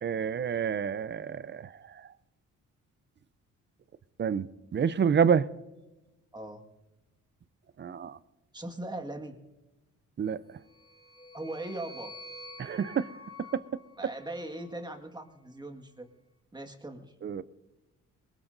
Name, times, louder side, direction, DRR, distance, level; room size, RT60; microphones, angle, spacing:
voice 1, 0.0-2.0 4.2-4.5 4.7-5.5 7.8-8.2 10.2-10.4 12.6-13.1 13.5-13.6 17.2-17.4, right 7 dB, 35° right, 0.6 m, -28 dB
voice 2, 6.3-6.6 8.5-9.4 11.3-12.1 14.0-16.1 16.5-17.1, right 1 dB, 15° right, 1.8 m, -39 dB
sound 1, 10.6-15.0, left 1 dB, 15° left, 3.8 m, -49 dB
22.0 x 20.5 x 2.7 m
cardioid pair, 90°, 30 cm